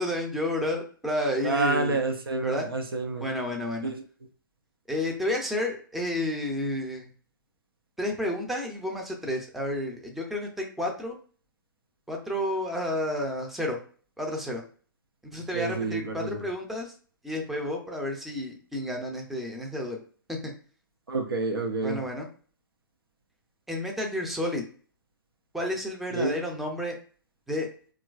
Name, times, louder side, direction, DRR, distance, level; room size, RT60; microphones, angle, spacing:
voice 1, 0.0-2.0 2.4-2.7 3.2-3.9 4.9-7.1 8.0-11.2 12.1-13.8 14.2-14.6 15.3-16.9 17.2-20.0 21.8-22.3 23.7-24.6 25.5-27.0 27.5-27.7, left 1 dB, ahead, 0 dB, 0.5 m, -31 dB
voice 2, 1.4-3.2 3.8-4.0 15.5-16.5 21.1-22.0 26.1-26.4, right 3 dB, 85° right, 4 dB, 0.6 m, -28 dB
2.9 x 2.4 x 2.4 m, 0.42 s
hypercardioid pair, 120°, 12 cm